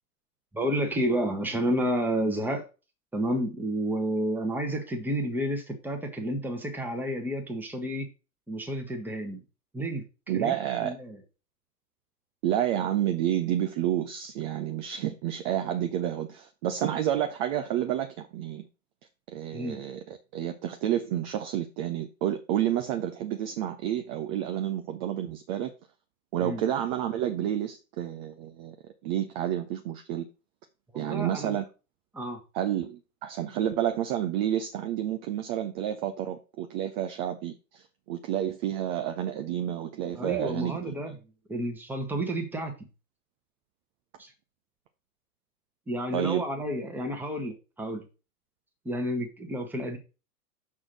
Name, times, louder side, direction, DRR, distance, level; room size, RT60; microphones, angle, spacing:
voice 1, 0.5-2.6 3.1-8.1 8.5-9.4 9.7-10.1 10.3-11.2 19.5-19.8 26.4-26.6 30.9-31.5 32.1-32.4 40.1-41.2 41.5-42.7 44.2-44.3 45.9-48.0 48.8-50.0, equal, 5° right, 1.3 m, -30 dB
voice 2, 10.3-10.9 12.4-18.7 19.3-25.7 26.3-28.8 29.0-30.3 30.9-31.6 32.5-40.9 46.1-46.4, right 11 dB, 30° right, 0.6 m, -30 dB
6.3 x 3.6 x 6.1 m
figure-of-eight pair, 105°, 47 cm